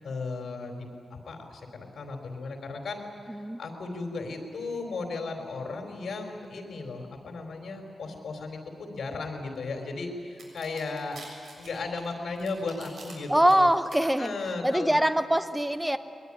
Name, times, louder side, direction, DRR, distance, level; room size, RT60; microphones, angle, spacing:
voice 1, 0.0-3.0 3.6-13.7 14.0-15.0, left 3 dB, 65° left, 3 dB, 4.2 m, -36 dB
voice 2, 3.3-3.6 13.3-14.3 14.6-16.0, right 1 dB, 5° right, 10 dB, 0.8 m, -23 dB
sound 1, 10.4-13.1 13.5-14.0, right 3 dB, 80° right, 7.3 m, -47 dB
23.0 x 21.5 x 9.9 m, 2.5 s
wide cardioid pair, 150°, 0 cm